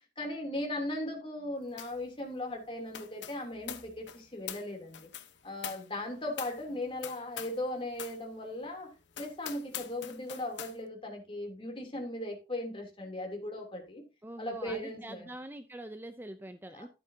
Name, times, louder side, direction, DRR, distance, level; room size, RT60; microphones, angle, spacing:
voice 1, 0.2-5.1 5.4-14.0 14.4-15.3 16.7-16.9, left 1 dB, 30° left, 3.1 m, -38 dB
sound 1, 1.8-2.1 2.3-7.7 7.9-8.2 8.6-8.7 9.1-10.8, left 10 dB, 80° left, 1.0 m, -44 dB
voice 2, 14.2-16.9, right 1 dB, 10° right, 0.6 m, -44 dB
12.0 x 8.9 x 2.8 m
head